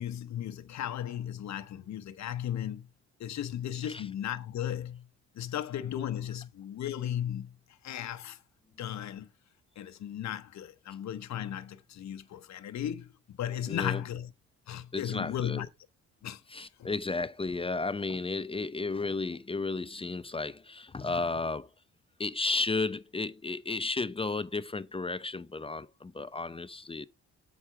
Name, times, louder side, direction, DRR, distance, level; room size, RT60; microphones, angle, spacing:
voice 1, 0.0-2.9 3.2-5.1 5.3-7.6 7.8-8.4 8.8-9.3 9.8-14.3 14.7-15.7 16.2-16.4 16.8-16.9, left 10 dB, 65° left, 1.1 m, -36 dB
voice 2, 13.7-14.0 14.9-15.7 16.5-21.7 22.2-27.1, left 3 dB, 20° left, 0.6 m, -33 dB
8.1 x 5.2 x 5.7 m
cardioid pair, 90°, 30 cm